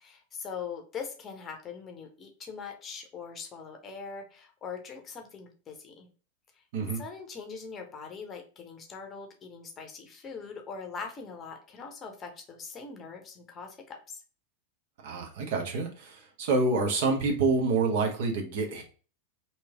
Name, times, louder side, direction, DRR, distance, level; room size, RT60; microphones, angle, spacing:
voice 1, 0.0-6.1 6.6-6.7 6.9-14.2, left 5 dB, 25° left, 3 dB, 0.7 m, -42 dB
voice 2, 15.0-18.8, right 3 dB, 50° right, 3 dB, 0.8 m, -27 dB
3.1 x 2.8 x 3.5 m, 0.39 s
figure-of-eight pair, 90°, 0 cm